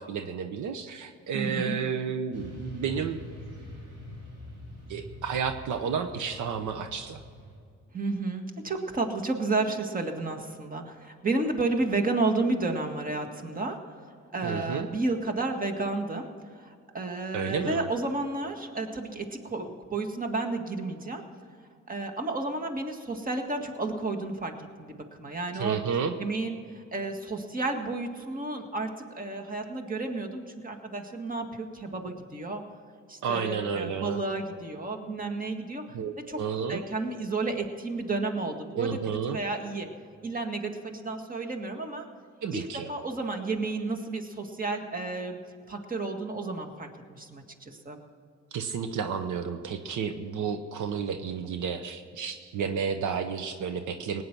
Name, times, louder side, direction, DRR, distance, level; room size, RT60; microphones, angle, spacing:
voice 1, 0.0-3.2 4.9-7.2 14.4-14.9 17.3-17.9 25.5-26.1 33.2-34.2 35.9-36.8 38.8-39.4 42.4-42.9 48.5-54.2, right 6 dB, 80° right, 8 dB, 1.0 m, -31 dB
voice 2, 1.3-1.7 7.9-13.8 14.3-16.3 16.5-21.2 21.9-24.5 24.8-25.8 26.2-32.6 33.1-35.8 36.3-36.4 36.7-39.0 39.3-39.9 40.2-42.1 42.5-45.4 45.7-48.0, right 3 dB, 30° right, 3 dB, 1.9 m, -31 dB
Motorcycle / Traffic noise roadway noise, 2.3-7.6, left 1 dB, 55° right, 3.6 m, -44 dB
18.0 x 9.6 x 6.0 m, 2.3 s
cardioid pair, 90°, 30 cm